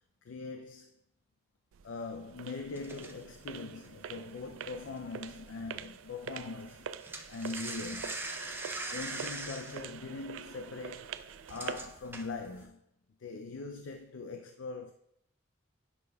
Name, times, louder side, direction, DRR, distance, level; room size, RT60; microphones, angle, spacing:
voice 1, 0.2-0.9 1.8-7.0 7.3-8.2 8.9-11.2 11.5-12.8 13.2-14.9, left 4 dB, 75° left, 0.4 m, -41 dB
sound 1, 1.7-12.0, right 8 dB, 80° right, 0.3 m, -45 dB
sound 2, 2.8-5.5 5.8-6.0 6.3-12.6, right 2 dB, 10° right, 0.5 m, -42 dB
9.6 x 5.2 x 2.3 m
head